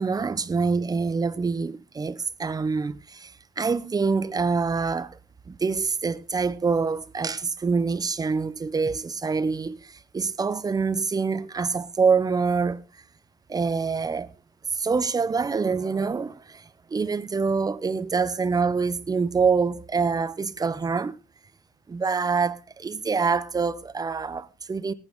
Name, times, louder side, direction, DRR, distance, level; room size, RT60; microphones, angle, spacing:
voice 1, 0.0-5.2 5.5-12.8 13.5-14.3 14.7-21.2 21.9-24.9, right 5 dB, 20° right, 0.8 m, -26 dB
18.5 x 9.1 x 3.6 m
cardioid pair, 110°, 17 cm